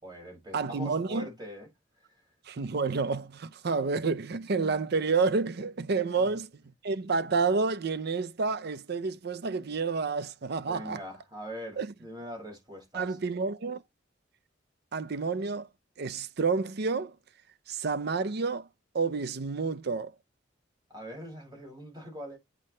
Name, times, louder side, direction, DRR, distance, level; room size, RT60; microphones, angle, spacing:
voice 1, 0.0-1.7 6.1-6.3 10.6-13.2 20.9-22.4, equal, 25° right, 5.6 m, -42 dB
voice 2, 0.5-1.3 2.5-6.5 6.8-11.0 11.8-11.9 12.9-13.8 14.9-15.7 16.0-17.1 17.7-18.7 18.9-20.1, right 4 dB, 60° right, 0.6 m, -29 dB
8.6 x 6.0 x 3.2 m
head